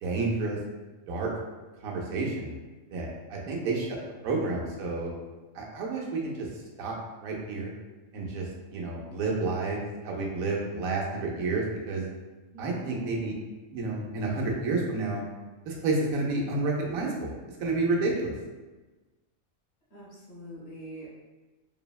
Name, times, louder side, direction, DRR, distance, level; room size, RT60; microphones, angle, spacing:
voice 1, 0.0-0.6 1.1-1.3 1.8-2.5 2.9-4.0 4.2-5.1 5.5-6.5 6.8-7.7 8.1-12.1 12.6-13.3 13.7-15.2 15.7-17.3 17.6-18.3, right 3 dB, 85° right, -2 dB, 1.0 m, -30 dB
voice 2, 3.4-4.0 12.5-13.4 19.9-21.1, equal, 55° left, -7 dB, 1.1 m, -45 dB
3.3 x 2.0 x 2.2 m, 1.2 s
omnidirectional pair, 1.4 m